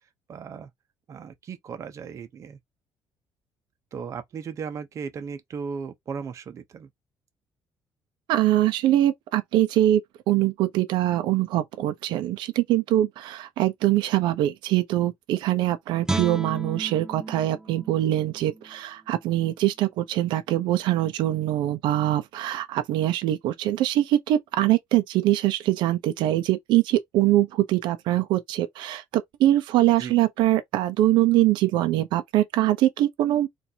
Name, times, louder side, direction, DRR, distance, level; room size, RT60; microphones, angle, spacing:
voice 1, 0.3-0.7 1.1-2.6 3.9-6.9 30.0-30.1, right 6 dB, 40° right, 0.7 m, -36 dB
voice 2, 8.3-10.0 10.3-33.5, right 14 dB, 80° right, 0.6 m, -23 dB
Guitar, 16.0-19.2 19.6-19.8, right 2 dB, 10° right, 0.4 m, -34 dB
4.3 x 2.6 x 2.8 m
cardioid pair, 140°, 8 cm